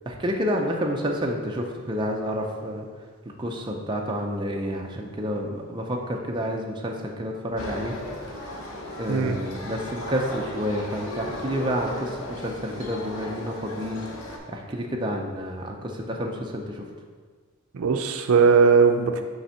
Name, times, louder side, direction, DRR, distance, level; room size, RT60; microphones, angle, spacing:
voice 1, 0.1-2.9 3.4-7.9 8.3-8.5 9.0-14.1 14.5-16.9, equal, 20° right, 0 dB, 0.5 m, -29 dB
sound 1, 7.6-14.4, left 1 dB, 70° left, 0.9 m, -36 dB
voice 2, 17.7-19.2, right 5 dB, 75° right, 6 dB, 0.4 m, -19 dB
5.5 x 3.3 x 5.6 m, 1.6 s
head